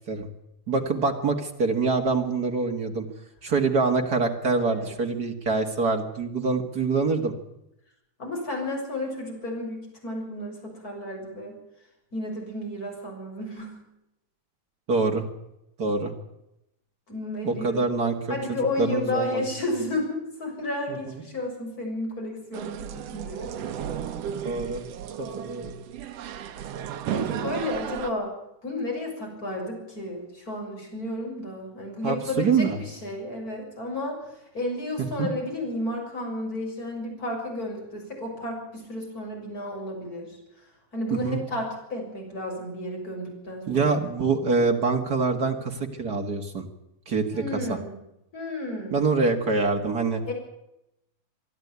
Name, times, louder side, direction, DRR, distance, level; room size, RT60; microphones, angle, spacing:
voice 1, 0.7-3.1 3.4-7.3 14.9-15.3 15.8-16.1 17.4-18.4 18.8-19.4 24.4-24.8 25.2-25.7 32.0-32.8 35.2-35.3 41.2-41.4 43.7-46.6 47.1-47.8 48.9-50.2, right 4 dB, 40° right, 4 dB, 1.4 m, -25 dB
voice 2, 8.2-11.6 12.1-13.8 17.1-17.8 18.3-23.5 27.1-28.3 28.6-34.2 34.5-40.4 40.9-43.9 47.3-48.0 48.3-49.0 50.3-50.4, left 1 dB, 20° left, 0 dB, 7.2 m, -32 dB
sound 1, 22.5-28.1, right 9 dB, 80° right, 1.4 m, -34 dB
25.5 x 12.0 x 9.5 m, 0.86 s
omnidirectional pair, 4.3 m